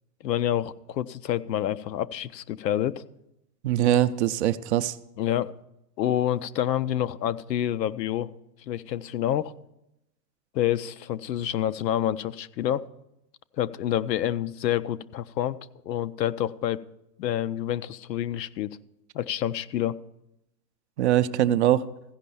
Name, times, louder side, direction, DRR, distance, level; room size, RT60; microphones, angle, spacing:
voice 1, 0.2-3.0 5.2-5.5 6.0-8.3 8.7-9.5 10.5-12.8 13.6-15.6 15.9-16.8 17.2-18.7 19.1-20.0, left 11 dB, 80° left, 14 dB, 0.7 m, -28 dB
voice 2, 3.6-5.0 21.0-21.8, right 12 dB, 45° right, 12 dB, 0.5 m, -22 dB
15.0 x 5.3 x 6.9 m, 0.86 s
hypercardioid pair, 130°, 50 cm